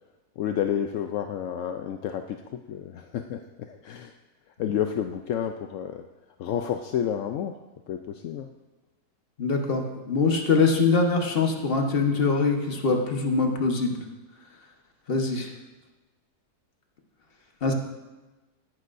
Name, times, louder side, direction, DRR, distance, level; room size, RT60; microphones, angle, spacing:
voice 1, 0.4-2.4 2.7-3.4 3.7-4.1 4.6-6.0 6.4-7.5 7.9-8.5, left 9 dB, 70° left, 6 dB, 0.8 m, -30 dB
voice 2, 9.4-14.0 15.1-15.5 17.6-17.7, left 4 dB, 40° left, 3 dB, 1.3 m, -23 dB
17.5 x 11.0 x 2.6 m, 1.1 s
omnidirectional pair, 1.7 m